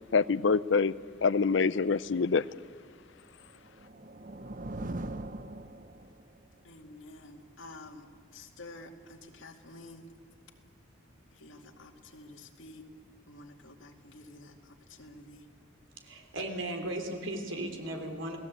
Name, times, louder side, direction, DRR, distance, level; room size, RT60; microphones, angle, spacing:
voice 1, 0.1-0.9 1.2-2.4, left 5 dB, 70° left, 18 dB, 0.6 m, -25 dB
sound 1, 3.5-6.4, right 2 dB, 45° right, 0.8 m, -40 dB
voice 2, 6.6-8.1 8.3-10.0 11.4-12.8 13.3-14.5 14.9-15.4, left 2 dB, 85° left, 4 dB, 2.3 m, -50 dB
voice 3, 16.0-18.4, right 1 dB, 80° right, 5 dB, 3.3 m, -36 dB
29.0 x 18.0 x 8.3 m, 2.2 s
head